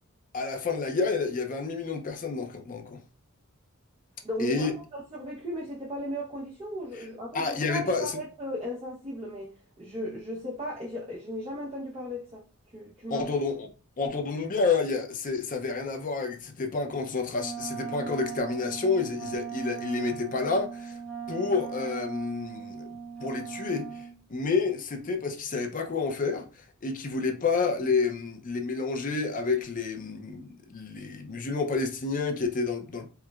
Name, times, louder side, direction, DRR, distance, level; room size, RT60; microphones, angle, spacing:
voice 1, 0.3-3.0 4.4-4.7 6.9-7.0 7.3-8.2 13.1-13.7 14.0-21.0 21.3-22.9 23.2-26.5 26.8-33.1, left 4 dB, 40° left, 0.5 m, -29 dB
voice 2, 4.2-12.4 12.7-13.3, equal, 30° right, 0.8 m, -36 dB
Wind instrument woodwind instrument, 17.3-24.2, right 6 dB, 5° left, 0.8 m, -38 dB
4.4 x 2.1 x 2.3 m
head